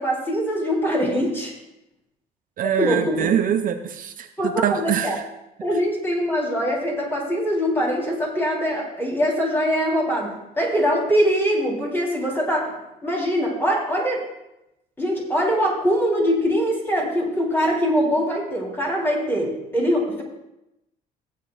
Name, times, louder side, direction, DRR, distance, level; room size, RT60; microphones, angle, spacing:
voice 1, 0.0-1.5 2.8-3.3 4.4-5.2 5.6-14.2 15.0-20.2, equal, 15° left, -3 dB, 3.8 m, -23 dB
voice 2, 2.6-5.2, right 9 dB, 55° right, 7 dB, 0.7 m, -24 dB
16.0 x 9.2 x 2.5 m, 0.89 s
cardioid pair, 110°, 17 cm